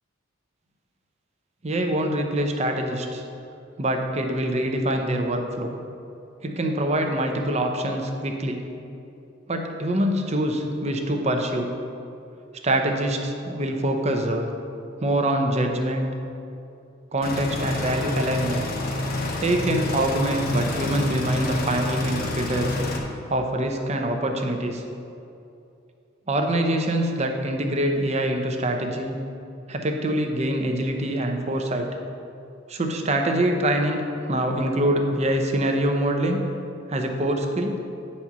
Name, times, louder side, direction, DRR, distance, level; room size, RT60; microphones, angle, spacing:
voice 1, 1.6-3.2 3.8-5.7 6.4-8.6 9.5-11.7 12.6-14.5 15.0-16.1 17.1-18.6 19.4-22.8 23.3-24.8 26.3-29.2 29.7-31.9 32.7-36.4 36.9-37.8, right 1 dB, 35° right, 4 dB, 0.7 m, -24 dB
sound 1, 17.2-23.0, left 2 dB, 50° left, 0.9 m, -28 dB
9.2 x 4.3 x 6.0 m, 2.7 s
head